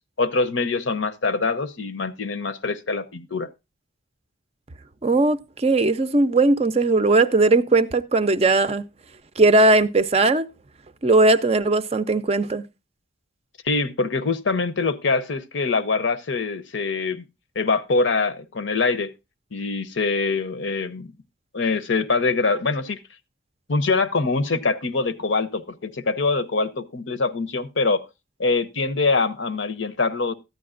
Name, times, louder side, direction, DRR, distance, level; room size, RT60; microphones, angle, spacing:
voice 1, 0.2-3.5 13.6-17.2 17.6-19.1 19.5-21.1 21.5-23.0 23.7-28.0 28.4-30.3, left 3 dB, 70° left, 0.7 m, -24 dB
voice 2, 5.0-8.8 9.4-10.5 11.0-12.6, right 2 dB, 30° right, 0.5 m, -18 dB
13.5 x 9.4 x 2.5 m
head